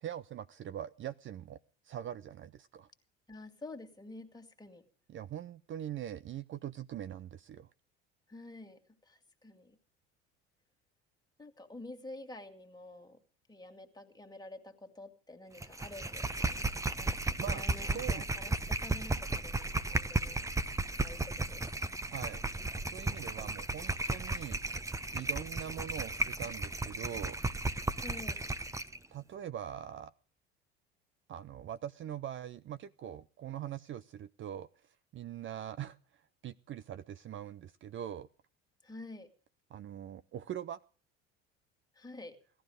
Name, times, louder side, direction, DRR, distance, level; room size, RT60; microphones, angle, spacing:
voice 1, 0.0-1.6 1.8-2.9 5.1-7.7 17.4-18.2 22.1-22.4 22.7-24.6 25.1-27.4 29.1-30.1 31.3-38.3 39.7-40.8, right 10 dB, 40° right, 14 dB, 0.6 m, -42 dB
voice 2, 3.3-4.8 8.3-9.8 11.4-13.2 13.5-16.7 17.0-17.2 17.5-20.4 21.0-21.7 27.9-28.4 38.8-39.3 41.9-42.4, left 2 dB, 10° left, 4 dB, 2.4 m, -49 dB
sound 1, 15.6-29.0, right 2 dB, 10° right, 0.9 m, -34 dB
17.5 x 12.5 x 5.1 m, 0.42 s
hypercardioid pair, 70°, 31 cm